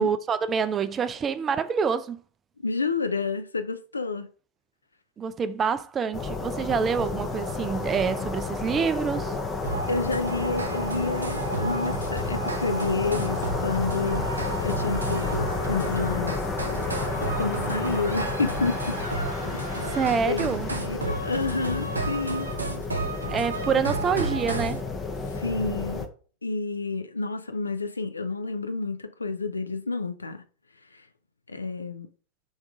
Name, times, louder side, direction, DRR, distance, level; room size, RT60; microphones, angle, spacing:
voice 1, 0.0-2.2 5.2-9.4 19.9-20.7 23.3-24.8, right 6 dB, 25° right, 0.3 m, -26 dB
voice 2, 2.6-4.3 9.9-16.4 17.4-19.0 19.5-19.6 20.3-22.5 23.7-23.8 25.4-26.1 26.4-30.4 30.9-31.0 31.5-32.1, left 3 dB, 80° left, 0.4 m, -29 dB
sound 1, 6.1-26.1, left 3 dB, 20° left, 0.6 m, -31 dB
sound 2, 9.6-24.8, right 3 dB, 80° right, 0.6 m, -33 dB
3.5 x 2.7 x 4.6 m
figure-of-eight pair, 90°, 0 cm